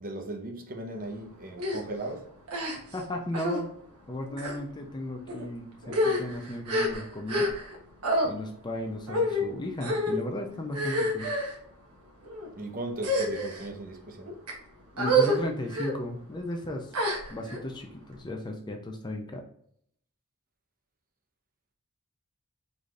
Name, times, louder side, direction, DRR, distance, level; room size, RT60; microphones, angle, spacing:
voice 1, 0.0-2.3 12.6-14.3, right 2 dB, 40° right, 0.8 m, -37 dB
sound 1, 1.6-1.8 2.5-3.0 3.3-3.6 4.3-4.6 5.3-5.4 5.8-7.8 8.0-8.3 9.1-9.4 9.8-10.2 10.7-11.5 12.2-12.5 13.0-13.7 14.3-14.5 15.0-15.4 15.7-15.9 16.9-17.6, equal, 85° right, 1.3 m, -28 dB
voice 2, 2.9-3.7 4.1-7.5 8.2-11.3 14.9-16.9 17.3-19.4, left 1 dB, 20° left, 0.5 m, -35 dB
4.9 x 4.0 x 2.4 m
head